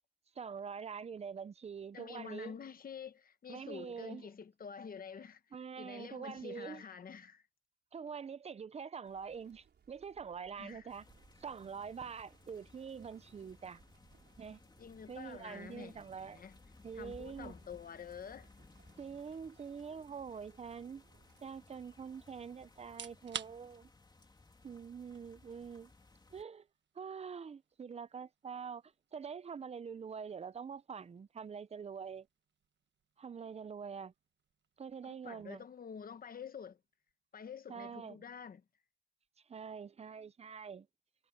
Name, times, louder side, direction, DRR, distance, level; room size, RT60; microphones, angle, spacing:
voice 1, 0.4-2.6 3.5-4.3 5.5-6.8 7.9-11.1 11.4-13.8 14.4-14.6 15.1-16.4 16.8-17.6 19.0-21.0 21.4-23.9 24.6-25.9 26.3-26.7 26.9-32.3 33.2-34.1 34.8-35.6 37.7-38.2 39.5-40.9, right 6 dB, 35° right, 0.5 m, -45 dB
voice 2, 1.9-5.4 5.8-7.4 10.6-10.9 14.8-16.6 16.9-18.5 35.0-36.8 37.3-38.6, left 7 dB, 55° left, 1.0 m, -48 dB
sound 1, 9.0-21.7, right 7 dB, 70° right, 4.8 m, -69 dB
sound 2, 10.9-26.4, left 3 dB, 25° left, 3.1 m, -61 dB
sound 3, 22.8-37.7, right 8 dB, 90° right, 1.3 m, -55 dB
wide cardioid pair, 155°, 18 cm